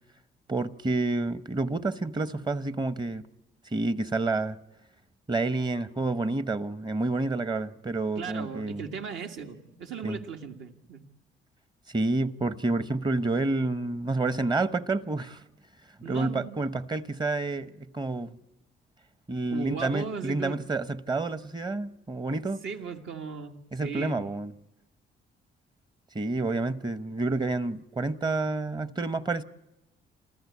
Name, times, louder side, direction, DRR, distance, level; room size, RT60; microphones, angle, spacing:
voice 1, 0.5-3.2 3.7-4.6 5.3-8.9 10.0-10.2 11.9-15.4 16.0-18.3 19.3-22.6 23.7-24.5 26.1-29.4, right 2 dB, 20° right, 0.8 m, -29 dB
voice 2, 8.2-11.0 16.0-16.6 19.5-20.6 22.6-24.2, right 6 dB, 75° right, 1.8 m, -37 dB
27.0 x 14.5 x 8.4 m
cardioid pair, 90°, 20 cm